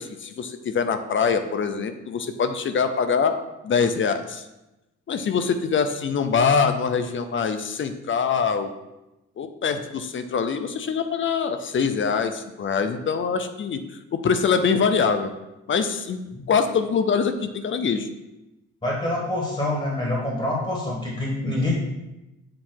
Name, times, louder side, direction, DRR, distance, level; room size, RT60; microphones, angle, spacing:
voice 1, 0.0-4.5 5.1-8.7 9.4-13.8 14.1-15.3 15.7-16.2 16.5-18.1, left 6 dB, 40° left, 9 dB, 0.6 m, -24 dB
voice 2, 18.8-21.7, left 1 dB, 20° left, -4 dB, 1.9 m, -26 dB
7.5 x 2.8 x 4.5 m, 0.98 s
cardioid pair, 90°, 30 cm